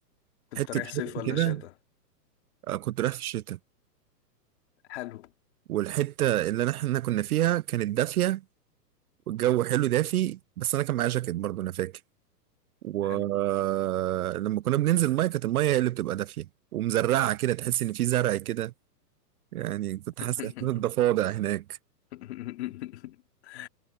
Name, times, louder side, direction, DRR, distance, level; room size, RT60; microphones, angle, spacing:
voice 1, 0.5-1.7 4.9-5.3 13.0-13.3 20.2-20.8 22.1-23.7, left 15 dB, 40° left, 2.7 m, -39 dB
voice 2, 1.3-1.6 2.7-3.6 5.7-8.4 9.3-11.9 12.8-16.5 16.7-18.7 19.5-21.6, right 14 dB, 65° right, 0.5 m, -27 dB
hypercardioid pair, 170°, 49 cm